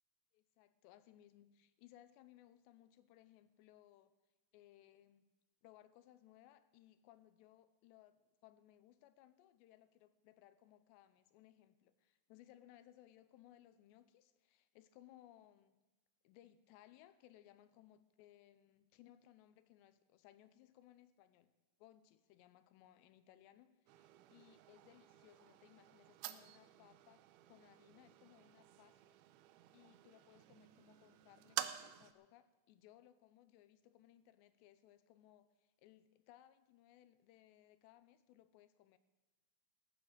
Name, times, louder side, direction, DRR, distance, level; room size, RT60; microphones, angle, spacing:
voice 1, 0.3-4.1 4.5-5.3 5.6-15.8 16.2-21.5 21.8-29.0 29.7-39.0, left 13 dB, 85° left, 2.9 m, -64 dB
sound 1, 23.9-32.1, right 13 dB, 80° right, 2.2 m, -50 dB
17.5 x 9.5 x 6.4 m
omnidirectional pair, 5.0 m